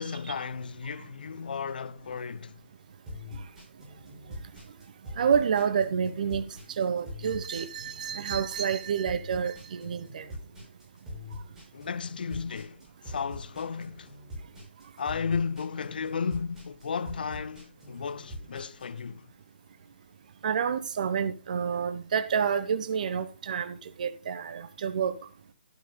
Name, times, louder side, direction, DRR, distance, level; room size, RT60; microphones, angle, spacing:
voice 1, 0.0-2.6 11.7-14.1 15.0-19.3, left 6 dB, 50° left, 0.8 m, -34 dB
sound 1, 3.1-19.0, left 1 dB, 10° right, 6.0 m, -43 dB
voice 2, 5.2-6.4 6.8-10.2 20.4-25.1, right 7 dB, 45° right, 1.1 m, -28 dB
12.5 x 12.0 x 2.3 m
figure-of-eight pair, 140°, 6 cm